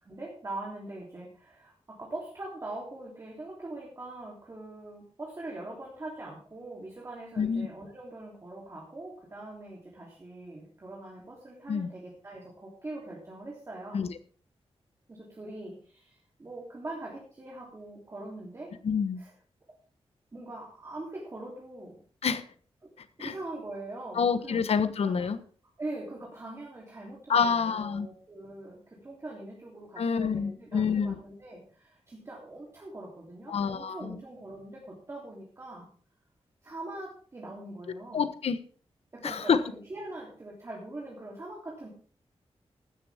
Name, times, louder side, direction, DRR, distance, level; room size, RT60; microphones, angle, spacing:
voice 1, 0.0-14.0 15.1-18.7 19.2-19.3 20.3-22.0 22.8-22.9 23.2-24.6 25.0-25.3 25.8-35.9 36.6-38.3 39.1-41.9, right 2 dB, 25° right, -3 dB, 3.2 m, -42 dB
voice 2, 7.4-7.7 11.7-11.9 13.9-14.1 18.8-19.2 22.2-22.4 23.2-23.3 24.1-25.4 27.3-28.1 30.0-31.2 33.5-34.2 38.1-38.6 39.2-39.6, left 6 dB, 75° left, 11 dB, 1.1 m, -27 dB
15.5 x 13.0 x 3.6 m, 0.43 s
wide cardioid pair, 175°, 11 cm